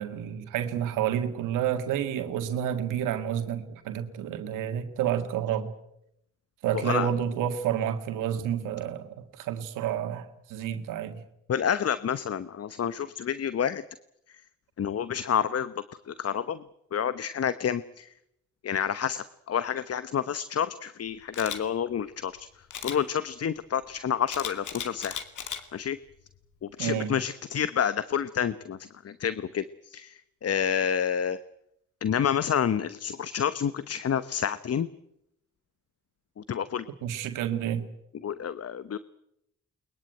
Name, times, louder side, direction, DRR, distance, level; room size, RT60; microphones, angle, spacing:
voice 1, 0.0-5.7 6.6-11.2 26.8-27.1 37.0-37.9, right 9 dB, 85° right, 8 dB, 1.9 m, -30 dB
voice 2, 6.7-7.1 11.5-13.8 14.8-15.7 16.1-16.6 16.9-18.1 18.6-22.5 22.8-25.2 25.7-26.0 26.6-28.8 29.0-31.4 32.0-34.9 36.4-36.8 38.2-39.0, left 8 dB, 50° left, 15 dB, 1.0 m, -29 dB
Camera, 21.3-21.6 22.7-23.0 24.3-25.6 26.1-26.3, left 8 dB, 70° left, 2.4 m, -36 dB
21.5 x 21.5 x 9.1 m, 0.78 s
supercardioid pair, 50°, 31 cm